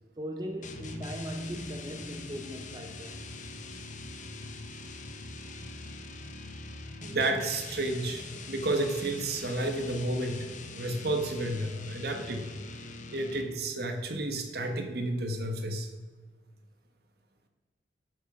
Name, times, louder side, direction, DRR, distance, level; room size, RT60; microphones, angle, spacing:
voice 1, 0.2-3.2, equal, 25° right, 0.9 m, -38 dB
sound 1, 0.6-13.7, left 2 dB, 45° left, 1.0 m, -43 dB
voice 2, 7.0-10.5 10.8-12.5 13.1-15.9, right 2 dB, 65° right, 1.4 m, -31 dB
11.0 x 6.4 x 5.7 m
head